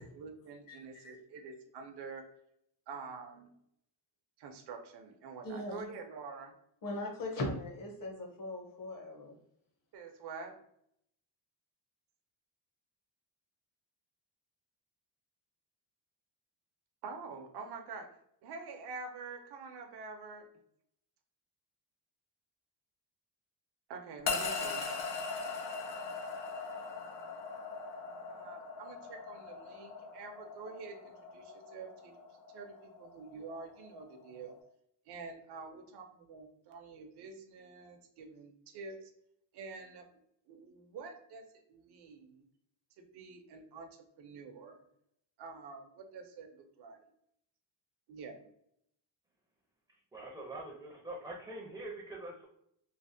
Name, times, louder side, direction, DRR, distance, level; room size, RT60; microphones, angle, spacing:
voice 1, 0.2-2.2 2.9-3.5 4.4-6.5 9.9-10.5 17.0-18.1 18.4-20.5 23.9-24.9 28.3-32.1 32.5-34.5 35.1-39.1 39.5-40.1 40.5-42.4 43.1-43.9 44.2-44.8 45.4-47.0 48.1-48.5, right 4 dB, 60° right, 3 dB, 0.6 m, -47 dB
voice 2, 5.4-5.9 6.8-9.3, left 1 dB, 45° left, 1 dB, 0.8 m, -39 dB
sound 1, 24.3-34.6, left 4 dB, 80° left, 0.6 m, -40 dB
voice 3, 50.1-52.5, right 2 dB, 5° right, -3 dB, 0.5 m, -44 dB
3.2 x 2.0 x 2.6 m, 0.72 s
cardioid pair, 145°, 45 cm